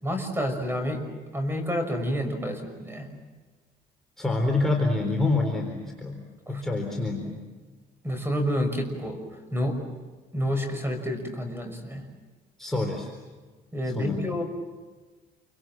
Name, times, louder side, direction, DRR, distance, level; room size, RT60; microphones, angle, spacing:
voice 1, 0.0-1.0 1.3-3.1 6.5-6.6 8.0-9.2 9.5-9.7 10.3-12.0 13.7-14.4, equal, 15° right, 6 dB, 6.1 m, -29 dB
voice 2, 4.2-6.2 6.5-7.4 12.6-13.1 13.9-14.2, left 2 dB, ahead, 0 dB, 4.0 m, -26 dB
28.5 x 25.0 x 7.6 m, 1.3 s
cardioid pair, 110°, 17 cm